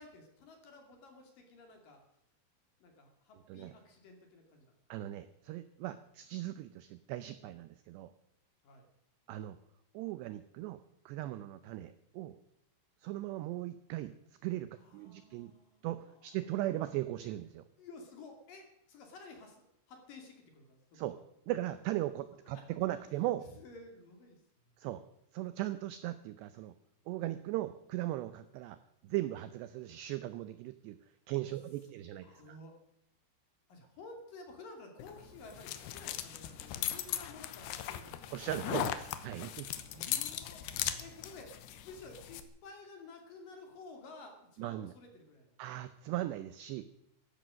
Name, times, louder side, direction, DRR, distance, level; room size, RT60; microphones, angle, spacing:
voice 1, 0.0-2.0 2.8-4.8 5.9-6.0 8.6-8.8 14.7-16.3 17.8-21.0 22.5-22.6 23.5-24.4 32.2-32.8 33.7-38.1 39.9-41.5 41.8-45.6, left 3 dB, 50° left, 4 dB, 3.6 m, -53 dB
voice 2, 4.9-8.1 9.3-9.6 9.9-10.8 11.1-12.4 13.0-14.1 14.4-15.5 15.8-17.6 20.9-21.2 21.5-23.5 24.8-25.0 25.3-26.7 27.1-28.8 29.0-31.0 31.3-32.6 38.3-39.7 44.6-44.9 45.6-46.8, right 15 dB, 85° right, 13 dB, 2.4 m, -38 dB
sound 1, 35.0-42.4, left 11 dB, 75° left, 2.6 m, -39 dB
15.5 x 11.5 x 6.3 m, 0.79 s
omnidirectional pair, 5.8 m